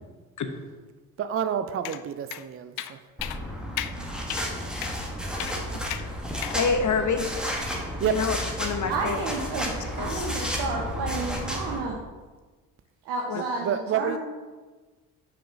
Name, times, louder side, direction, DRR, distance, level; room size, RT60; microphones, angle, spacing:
voice 1, 1.2-3.0 8.0-8.3 13.4-14.2, right 8 dB, 30° right, 11 dB, 0.5 m, -29 dB
sound 1, 1.8-2.0 2.3-2.4 2.8-2.9 3.2-3.4 3.8-3.9 4.3-4.5 4.8-5.0 5.4-5.6 5.9-6.0 6.4-6.6, left 13 dB, 60° left, 0.5 m, -33 dB
sound 2, 3.2-11.8, equal, ahead, 1.8 m, -32 dB
voice 2, 6.4-7.3 8.0-9.2 10.0-10.3 13.3-13.4, left 5 dB, 45° left, 6 dB, 1.1 m, -27 dB
voice 3, 8.9-12.0 13.0-14.2, right 3 dB, 70° right, -1 dB, 1.1 m, -31 dB
5.9 x 5.0 x 5.1 m, 1.3 s
hypercardioid pair, 50°, 42 cm